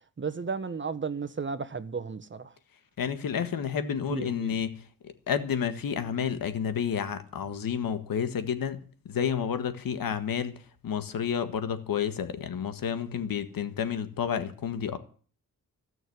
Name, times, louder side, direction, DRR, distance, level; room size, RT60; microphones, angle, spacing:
voice 1, 0.2-2.5 4.1-4.5, right 5 dB, 35° right, 1.3 m, -34 dB
voice 2, 3.0-4.7 5.0-8.8 9.1-10.6 10.8-15.0, left 8 dB, 80° left, 1.7 m, -30 dB
16.5 x 6.4 x 9.4 m
cardioid pair, 80°, 34 cm